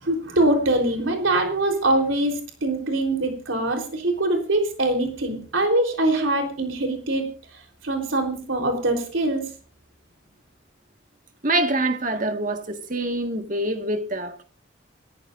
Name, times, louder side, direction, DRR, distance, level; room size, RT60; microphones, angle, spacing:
voice 1, 0.0-7.3 7.8-9.5, right 2 dB, 80° right, 3.8 m, -23 dB
voice 2, 11.4-14.4, right 2 dB, 40° right, 1.8 m, -25 dB
28.5 x 14.0 x 2.6 m
head